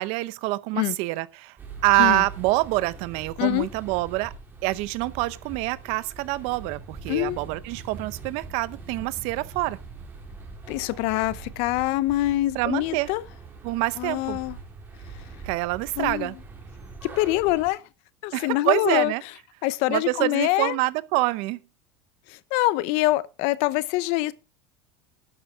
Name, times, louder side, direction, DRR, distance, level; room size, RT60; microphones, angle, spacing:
voice 1, 0.0-1.5 1.8-4.3 4.6-9.8 12.5-13.1 13.6-14.4 15.4-16.3 18.3-19.2 19.9-21.6, right 20 dB, 60° right, 0.8 m, -26 dB
sound 1, 1.6-17.7, right 4 dB, 15° right, 3.1 m, -42 dB
voice 2, 7.1-7.4 10.7-13.2 14.0-14.6 16.0-16.3 17.0-17.8 18.2-19.1 19.6-20.8 22.3-24.3, left 17 dB, 60° left, 0.7 m, -25 dB
12.0 x 7.3 x 4.9 m
supercardioid pair, 145°, 12 cm